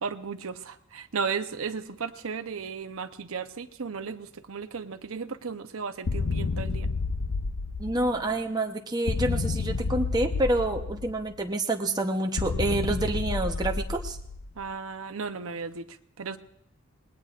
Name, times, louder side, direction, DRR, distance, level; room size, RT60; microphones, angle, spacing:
voice 1, 0.0-6.9 14.6-16.4, right 5 dB, 75° right, 8 dB, 0.8 m, -35 dB
sound 1, 6.1-8.4 9.1-11.4 12.4-14.6, left 4 dB, 80° left, 0.7 m, -30 dB
voice 2, 7.8-14.2, right 1 dB, 20° right, 2 dB, 0.9 m, -28 dB
25.5 x 19.5 x 2.5 m, 0.73 s
head